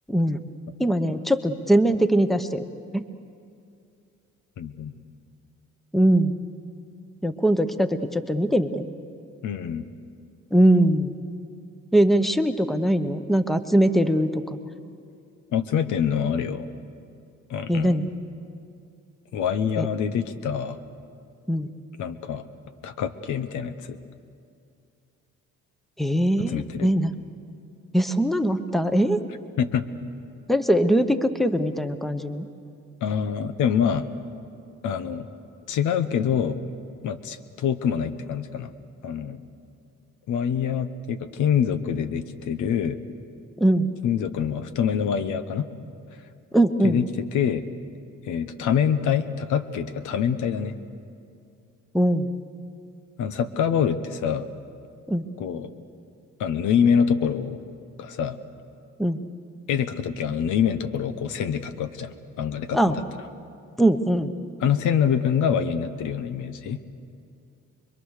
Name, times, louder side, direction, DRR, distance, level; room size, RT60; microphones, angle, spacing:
voice 1, 0.1-0.4 0.8-2.6 2.9-3.0 5.9-6.3 7.2-8.8 10.5-11.1 11.9-14.6 17.7-18.1 19.8-19.9 21.5-21.7 26.0-27.1 27.9-29.2 30.5-32.5 43.6-43.9 46.5-47.0 51.9-52.3 55.1-55.3 59.0-59.2 62.7-63.0 63.8-64.3, right 1 dB, ahead, 10 dB, 1.0 m, -21 dB
voice 2, 4.6-4.9 9.4-9.8 15.5-16.7 17.5-18.0 19.3-20.8 22.0-22.4 22.8-24.0 26.5-26.9 29.6-29.9 33.0-34.1 34.8-35.3 35.7-36.6 37.0-38.7 39.0-39.4 40.3-43.0 44.0-45.7 46.8-47.6 48.2-50.8 53.2-54.5 55.4-55.7 56.4-57.6 58.0-58.4 59.7-63.0 64.6-66.8, left 8 dB, 80° left, 11 dB, 1.1 m, -25 dB
26.0 x 22.5 x 6.6 m, 2.5 s
cardioid pair, 90°, 30 cm